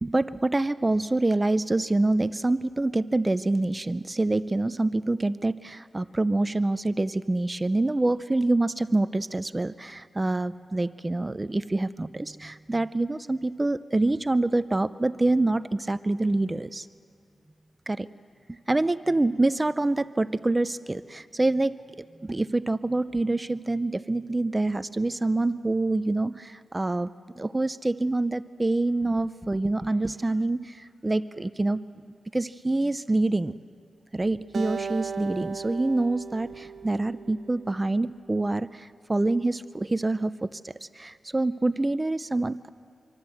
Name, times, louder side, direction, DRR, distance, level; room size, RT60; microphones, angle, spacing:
voice 1, 0.0-16.9 17.9-18.1 18.5-21.8 22.2-31.9 32.3-33.6 34.1-42.7, right 2 dB, 25° right, 14 dB, 0.6 m, -26 dB
Acoustic guitar, 34.5-37.9, right 5 dB, 65° right, 1.5 m, -37 dB
25.5 x 24.5 x 7.9 m, 2.4 s
cardioid pair, 75°, 0 cm